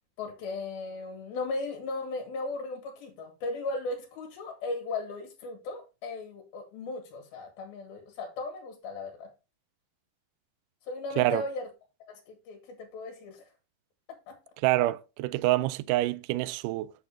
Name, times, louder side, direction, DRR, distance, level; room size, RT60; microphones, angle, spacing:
voice 1, 0.2-9.3 10.8-11.7 12.0-13.5 14.3-14.4, left 3 dB, 85° left, 3.7 m, -36 dB
voice 2, 14.6-16.9, right 17 dB, 85° right, 1.9 m, -26 dB
8.2 x 6.6 x 3.6 m
omnidirectional pair, 4.2 m